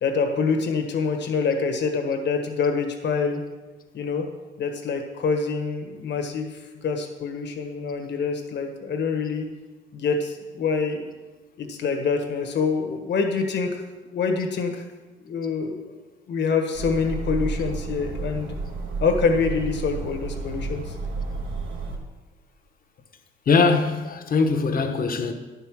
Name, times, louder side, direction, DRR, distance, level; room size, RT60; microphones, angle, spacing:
voice 1, 0.0-3.4 3.9-4.3 4.6-9.4 9.9-11.0 11.6-13.8 14.1-14.8 15.2-15.8 16.3-18.5 19.0-21.0, left 5 dB, 60° left, 1.5 m, -26 dB
sound 1, 16.7-22.0, right 4 dB, 85° right, 1.5 m, -31 dB
voice 2, 23.5-25.3, left 4 dB, 45° left, 1.1 m, -21 dB
10.5 x 5.6 x 6.1 m
cardioid pair, 90°, 20 cm